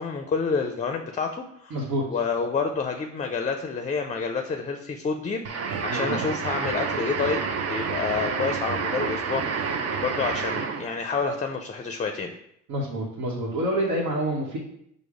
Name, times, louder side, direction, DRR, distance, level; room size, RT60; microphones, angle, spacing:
voice 1, 0.0-1.8 2.1-5.5 5.8-7.4 7.7-12.3, left 5 dB, 25° left, 6 dB, 0.4 m, -28 dB
voice 2, 1.7-2.0 5.9-6.1 12.7-14.6, right 1 dB, 85° right, -3 dB, 1.0 m, -27 dB
sound 1, 5.4-11.0, right 5 dB, 55° right, 0.6 m, -29 dB
5.0 x 2.1 x 4.8 m, 0.74 s
cardioid pair, 90°, 30 cm